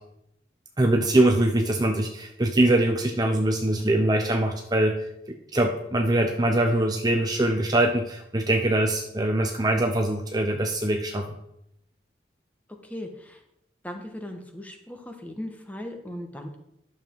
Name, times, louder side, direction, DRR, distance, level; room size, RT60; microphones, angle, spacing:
voice 1, 0.8-5.0 5.3-11.3, right 1 dB, 20° right, 3 dB, 0.7 m, -23 dB
voice 2, 12.9-13.4 13.8-16.6, left 1 dB, 10° left, 4 dB, 1.2 m, -38 dB
11.5 x 7.4 x 4.6 m, 0.80 s
head